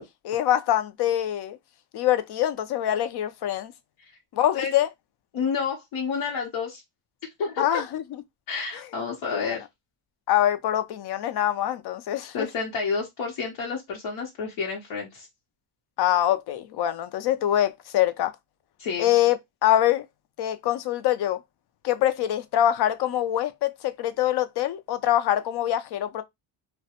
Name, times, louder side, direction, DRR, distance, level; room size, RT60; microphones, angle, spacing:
voice 1, 0.3-1.6 1.9-3.7 4.3-4.9 7.6-8.0 9.3-9.5 10.3-12.5 16.0-18.3 19.0-19.4 19.6-20.1 20.4-21.4 21.8-26.2, left 12 dB, 55° left, 0.5 m, -24 dB
voice 2, 5.3-6.8 7.4-7.8 8.5-9.6 12.3-15.3 18.8-19.1, left 5 dB, 80° left, 0.8 m, -30 dB
2.3 x 2.1 x 2.8 m
cardioid pair, 100°, 47 cm